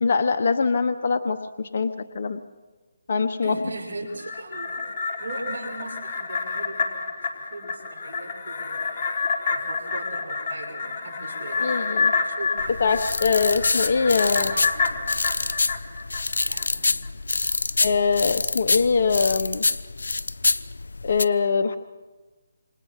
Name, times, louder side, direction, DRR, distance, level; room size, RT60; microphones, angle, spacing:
voice 1, 0.0-1.4 1.7-2.4 3.1-3.5 11.6-12.1 12.8-14.5 17.8-19.6 21.0-21.8, left 5 dB, 55° left, 7 dB, 1.0 m, -22 dB
voice 2, 3.4-4.8 5.2-9.1 9.5-12.8 14.2-15.2 16.5-17.1, right 2 dB, 70° right, 1 dB, 6.5 m, -39 dB
sound 1, 4.1-16.6 17.0-17.1, left 4 dB, 40° left, 3.8 m, -28 dB
sound 2, 12.6-21.2, left 3 dB, 80° left, 0.8 m, -26 dB
28.0 x 27.0 x 5.9 m, 1.2 s
figure-of-eight pair, 155°, 0 cm